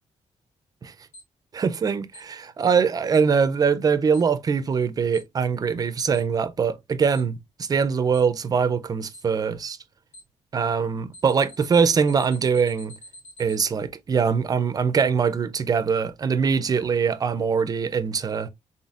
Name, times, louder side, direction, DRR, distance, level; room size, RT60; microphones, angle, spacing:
Alarm, 1.1-1.2 2.1-2.2 3.1-3.2 4.1-4.2 5.1-5.2 6.1-6.2 7.1-7.2 8.1-8.2 9.1-9.2 10.1-10.2 11.1-13.6, equal, 55° left, 1.4 m, -45 dB
voice 1, 1.5-9.8 10.5-12.9 13.4-18.5, right 6 dB, 30° right, 0.4 m, -23 dB
4.0 x 3.6 x 2.4 m
wide cardioid pair, 175°, 13 cm